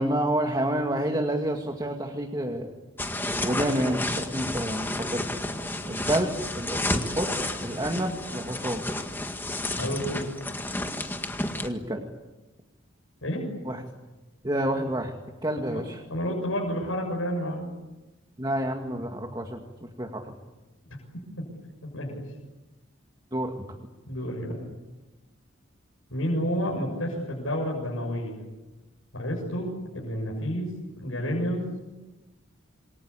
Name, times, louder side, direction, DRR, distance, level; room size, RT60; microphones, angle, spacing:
voice 1, 0.0-2.7 3.4-5.3 5.9-7.3 7.6-8.8 11.6-12.0 13.6-13.8 14.4-15.1 15.4-16.0 18.4-20.3 23.3-23.5, right 1 dB, 20° right, 2 dB, 2.3 m, -29 dB
sound 1, 3.0-11.7, left 1 dB, 10° left, 1.9 m, -31 dB
voice 2, 9.8-10.2 13.2-13.5 15.6-15.8 16.1-17.8 21.1-21.4 21.8-22.2 24.1-24.6 26.1-28.4 29.1-31.7, equal, 80° left, -2 dB, 7.1 m, -30 dB
28.0 x 24.0 x 8.6 m, 1.1 s
head